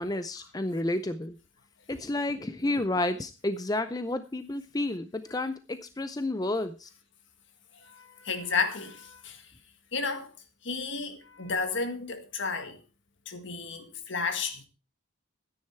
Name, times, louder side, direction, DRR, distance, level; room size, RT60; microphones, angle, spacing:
voice 1, 0.0-1.4 1.9-6.9, left 2 dB, 20° left, 0.5 m, -31 dB
voice 2, 7.8-9.4 9.9-10.3 10.6-12.8 13.3-14.6, left 4 dB, 60° left, 1.8 m, -32 dB
13.0 x 9.9 x 4.4 m
head